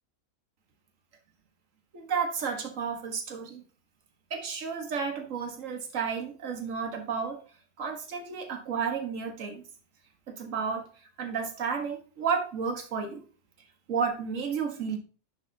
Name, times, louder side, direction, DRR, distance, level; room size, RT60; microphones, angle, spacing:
voice 1, 1.9-3.6 4.3-7.4 7.8-9.6 10.4-10.9 11.2-13.2 13.9-15.0, right 6 dB, 60° right, 4 dB, 1.8 m, -32 dB
10.5 x 6.6 x 2.8 m, 0.37 s
omnidirectional pair, 1.6 m